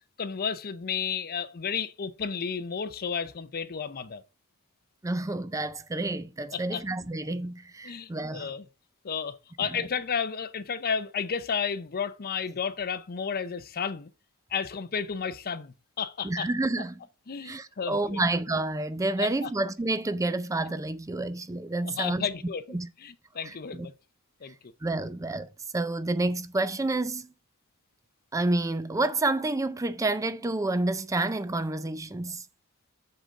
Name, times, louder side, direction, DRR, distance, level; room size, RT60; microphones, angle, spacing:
voice 1, 0.2-4.2 6.5-6.8 7.8-8.7 9.0-14.1 14.5-16.5 17.3-18.2 19.2-19.5 20.7-20.8 21.8-23.9 24.4-24.5, left 6 dB, 45° left, 0.6 m, -32 dB
voice 2, 5.0-8.5 16.2-17.0 17.4-22.3 22.7-22.9 23.4-23.9 24.8-27.3 28.3-32.5, right 2 dB, 15° right, 0.4 m, -29 dB
8.0 x 3.8 x 6.2 m
head